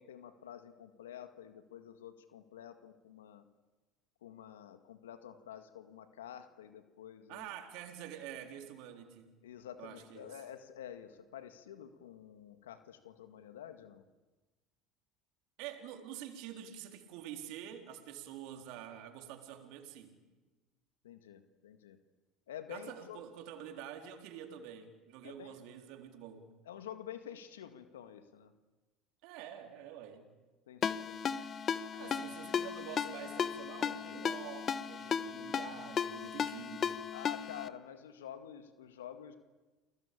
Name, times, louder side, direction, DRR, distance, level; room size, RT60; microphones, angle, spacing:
voice 1, 0.0-3.5 4.2-7.5 9.4-14.1 21.0-22.0 22.5-23.2 25.2-25.6 26.7-28.5 30.7-31.4 32.0-32.4 37.1-39.4, left 9 dB, 85° left, 9 dB, 1.9 m, -49 dB
voice 2, 7.3-9.3 9.8-10.3 15.6-20.1 22.7-26.5 29.2-30.2 31.3-31.5 31.9-37.0, right 9 dB, 65° right, 4 dB, 3.9 m, -47 dB
Ringtone, 30.8-37.7, left 7 dB, 40° left, 1.3 m, -36 dB
30.0 x 21.0 x 8.7 m, 1.2 s
hypercardioid pair, 75°, 0 cm